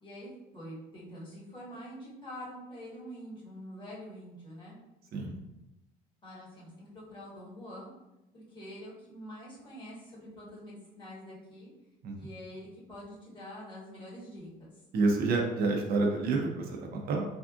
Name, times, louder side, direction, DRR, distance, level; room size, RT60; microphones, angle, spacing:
voice 1, 0.0-4.8 6.2-7.9 8.3-11.7 12.1-14.7, equal, 30° left, -7 dB, 1.5 m, -46 dB
voice 2, 14.9-17.3, right 3 dB, 65° right, 1 dB, 0.5 m, -28 dB
3.4 x 2.4 x 2.4 m, 0.94 s
cardioid pair, 110°, 17 cm